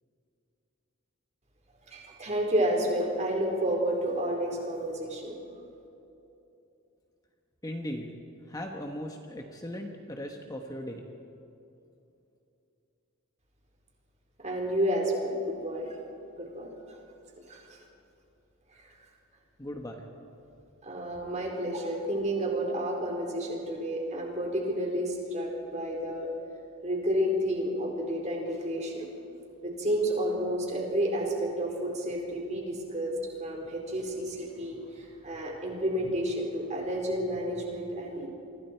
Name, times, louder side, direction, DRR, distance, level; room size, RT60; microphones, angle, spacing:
voice 1, 1.9-5.3 14.4-16.0 16.4-17.0 17.5-17.8 20.8-26.3 26.8-29.1 29.6-33.1 33.4-38.3, right 1 dB, 35° right, 0 dB, 4.3 m, -30 dB
voice 2, 7.6-8.1 8.5-11.0 19.6-20.0, equal, 15° left, 2 dB, 1.3 m, -38 dB
29.5 x 24.0 x 4.6 m, 2.9 s
head